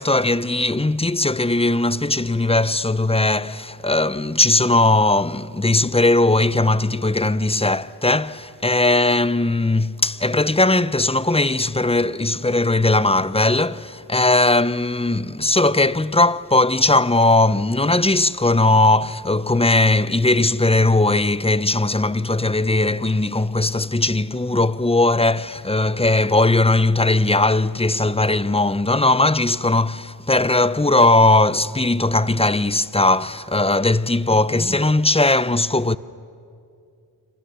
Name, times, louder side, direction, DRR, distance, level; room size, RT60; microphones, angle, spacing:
voice 1, 0.0-36.0, left 2 dB, 15° left, 0.6 m, -19 dB
28.0 x 25.5 x 6.8 m
wide cardioid pair, 55°, 39 cm